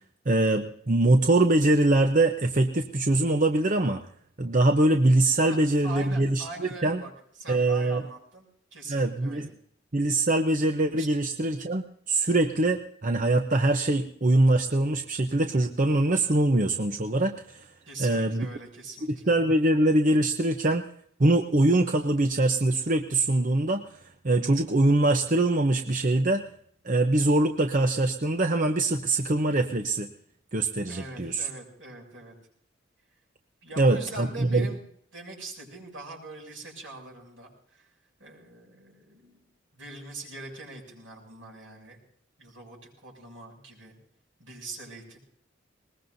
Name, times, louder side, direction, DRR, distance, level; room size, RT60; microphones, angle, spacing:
voice 1, 0.3-4.0 4.4-6.4 6.8-7.0 7.5-8.0 8.9-9.5 9.9-17.6 18.0-18.5 19.3-20.8 21.2-23.9 24.2-26.5 26.8-30.1 30.5-31.5 33.8-34.7, right 2 dB, 40° right, 5 dB, 0.8 m, -23 dB
voice 2, 5.8-7.1 7.4-8.5 8.7-9.5 11.0-11.1 17.9-19.3 30.9-32.3 33.6-34.8 35.1-37.9 38.2-39.4 39.7-42.0 42.4-44.0 44.4-45.2, right 2 dB, 80° right, -1 dB, 7.2 m, -42 dB
21.5 x 20.5 x 2.7 m, 0.64 s
head